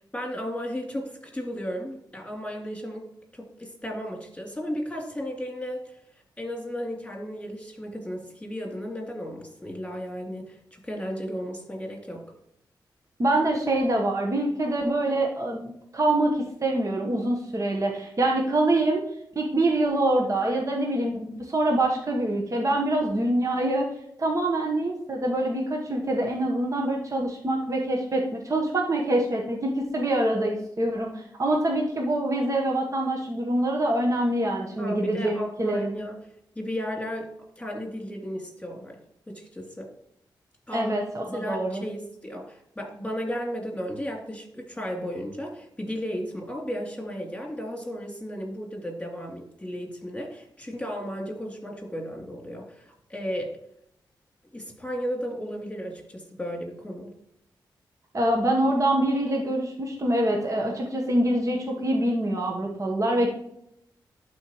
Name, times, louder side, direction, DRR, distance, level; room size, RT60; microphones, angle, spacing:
voice 1, 0.0-3.1 3.3-6.0 6.4-12.2 34.8-36.1 36.5-37.3 37.6-39.0 39.3-39.9 40.7-40.9 41.3-53.5 54.5-57.1, equal, 10° left, -1 dB, 2.9 m, -34 dB
voice 2, 13.2-19.0 19.3-23.9 24.2-35.9 40.7-41.8 58.1-63.3, right 1 dB, 40° right, 0 dB, 1.2 m, -25 dB
12.0 x 4.4 x 3.1 m, 0.75 s
cardioid pair, 60°, 8 cm